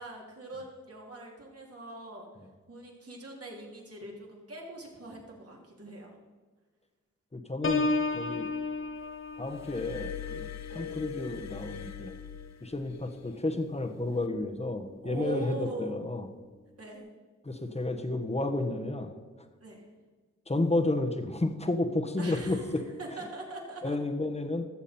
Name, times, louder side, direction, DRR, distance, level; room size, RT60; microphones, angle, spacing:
voice 1, 0.0-2.3 2.7-6.1 10.7-10.9 15.0-15.9 16.8-17.1 19.6-19.8 22.2-24.0, right 2 dB, 50° right, -1 dB, 3.1 m, -42 dB
voice 2, 7.3-8.5 9.4-10.5 10.7-12.1 12.6-16.3 17.4-19.1 20.5-22.6 23.8-24.6, left 2 dB, 20° left, 6 dB, 1.4 m, -31 dB
Piano, 7.6-13.3 13.7-14.1, left 3 dB, 45° left, 1.1 m, -35 dB
Glass, 9.5-13.1 14.0-14.3, left 9 dB, 60° left, 0.7 m, -42 dB
14.0 x 7.1 x 4.4 m, 1.4 s
cardioid pair, 50°, 30 cm